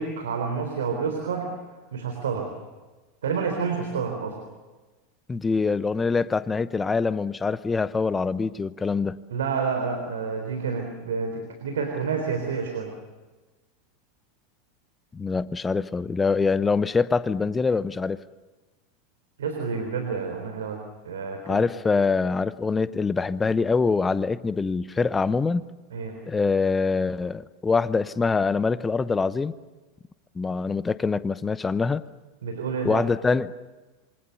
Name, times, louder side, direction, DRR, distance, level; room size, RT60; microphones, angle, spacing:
voice 1, 0.0-1.5 1.9-2.5 3.2-4.3 9.3-12.9 19.4-21.7 25.9-26.2 32.4-33.0, right 5 dB, 70° right, 4 dB, 3.7 m, -29 dB
voice 2, 5.3-9.2 15.1-18.2 21.5-25.6 26.3-29.5 30.3-32.0 32.8-33.5, left 4 dB, 15° left, 16 dB, 0.9 m, -24 dB
27.0 x 24.0 x 7.0 m, 1.2 s
figure-of-eight pair, 85°, 0 cm